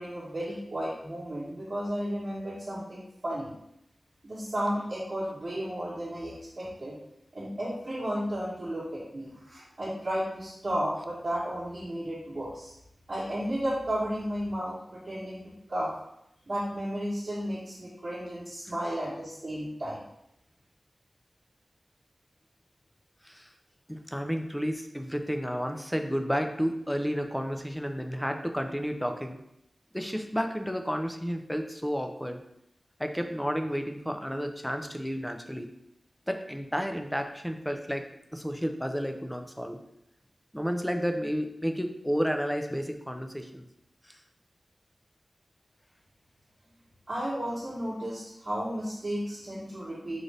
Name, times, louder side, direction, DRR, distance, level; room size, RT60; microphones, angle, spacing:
voice 1, 0.0-3.5 4.2-7.0 7.3-12.7 13.1-15.9 16.5-20.0 47.1-50.2, equal, 50° right, -10 dB, 1.1 m, -33 dB
voice 2, 23.9-29.4 29.9-32.4 33.0-35.7 36.3-38.0 38.3-39.8 40.5-43.6 44.0-44.2, equal, 5° left, 6 dB, 0.3 m, -31 dB
3.9 x 2.5 x 3.2 m, 0.79 s
wide cardioid pair, 95°, 0 cm